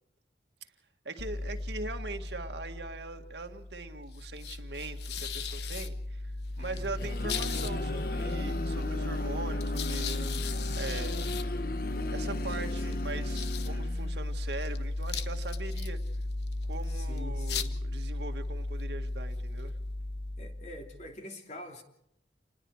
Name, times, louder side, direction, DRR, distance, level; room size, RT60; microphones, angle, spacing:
voice 1, 1.1-6.2 6.6-10.3 10.7-11.2 12.1-16.0 16.7-19.7, right 3 dB, 80° right, 6 dB, 1.9 m, -41 dB
sound 1, 1.2-21.1, left 2 dB, 75° left, 1.2 m, -35 dB
sound 2, 6.6-14.3, left 2 dB, 55° left, 1.1 m, -38 dB
voice 2, 6.6-7.1 12.6-13.0 16.8-17.8 20.4-21.8, left 1 dB, 40° left, 3 dB, 3.0 m, -46 dB
28.5 x 20.5 x 4.8 m, 0.75 s
head